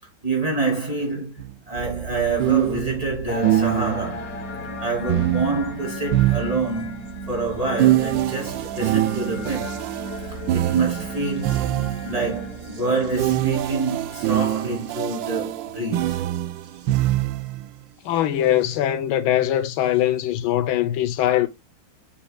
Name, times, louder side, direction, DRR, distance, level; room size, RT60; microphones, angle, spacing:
voice 1, 0.2-4.3 4.8-9.8 10.5-11.7 12.0-16.2, right 3 dB, 20° right, 2.9 m, -27 dB
sound 1, 1.4-1.5 2.4-4.2 5.1-7.0 7.8-12.3 13.2-17.7, right 14 dB, 75° right, 1.2 m, -24 dB
sound 2, 1.7-18.8 19.9-20.0, right 4 dB, 55° right, 1.2 m, -38 dB
sound 3, 3.3-14.7, left 5 dB, 50° left, 1.5 m, -39 dB
voice 2, 18.0-21.5, left 12 dB, 85° left, 1.5 m, -21 dB
7.2 x 5.8 x 2.3 m
omnidirectional pair, 2.2 m